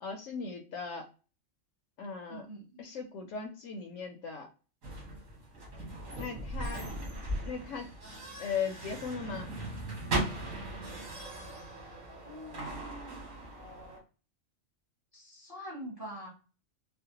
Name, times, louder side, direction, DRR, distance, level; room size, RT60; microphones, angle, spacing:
voice 1, 0.0-1.1 2.0-2.5 2.8-4.5 6.1-6.9 7.4-7.9 8.4-9.5, left 5 dB, 75° left, 2 dB, 0.9 m, -38 dB
voice 2, 2.3-2.8 12.2-13.3 15.1-16.3, equal, 25° right, -2 dB, 0.6 m, -45 dB
sound 1, 4.8-14.0, right 1 dB, 85° right, 1.7 m, -38 dB
4.1 x 2.1 x 2.8 m, 0.35 s
omnidirectional pair, 1.3 m